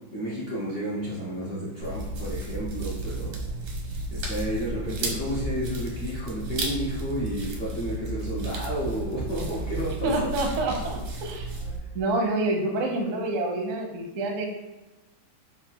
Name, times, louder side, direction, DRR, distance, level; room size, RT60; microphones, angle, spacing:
voice 1, 0.1-3.4 4.1-10.1, equal, 75° left, -7 dB, 0.5 m, -31 dB
sound 1, 1.8-11.8, right 2 dB, 85° right, 1.5 m, -33 dB
voice 2, 10.0-11.5 11.9-14.5, right 2 dB, 65° right, 2 dB, 0.7 m, -27 dB
3.7 x 2.4 x 4.4 m, 1.0 s
omnidirectional pair, 2.1 m